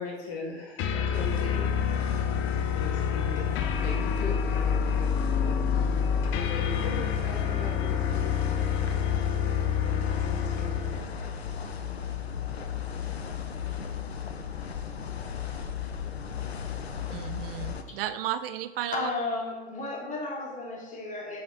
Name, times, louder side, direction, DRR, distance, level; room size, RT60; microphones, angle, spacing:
voice 1, 0.0-1.7 2.7-11.0, left 3 dB, 65° left, -1 dB, 2.0 m, -40 dB
sound 1, 0.8-11.1, left 7 dB, 40° left, 0.6 m, -28 dB
sound 2, 1.1-17.8, left 6 dB, 90° left, 0.5 m, -36 dB
voice 2, 17.1-19.1, right 11 dB, 65° right, 12 dB, 0.5 m, -33 dB
voice 3, 18.9-21.4, left 3 dB, 25° left, 0 dB, 1.7 m, -33 dB
7.6 x 5.7 x 2.6 m, 1.3 s
figure-of-eight pair, 80°, 31 cm